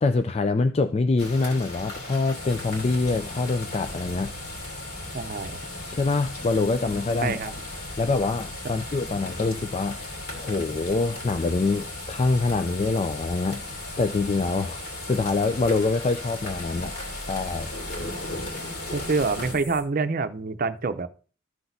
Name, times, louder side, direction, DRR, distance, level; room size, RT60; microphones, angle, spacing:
voice 1, 0.0-4.3 5.9-7.4 8.0-13.7 14.0-14.8 15.1-16.9 17.3-17.7, left 3 dB, 30° left, 0.4 m, -25 dB
sound 1, 1.2-19.5, left 2 dB, 55° left, 2.5 m, -38 dB
sound 2, 2.3-19.8, left 1 dB, 80° left, 5.4 m, -40 dB
voice 2, 5.1-5.6 7.2-7.5 18.9-21.1, right 4 dB, 50° right, 0.6 m, -26 dB
14.0 x 6.1 x 2.7 m
head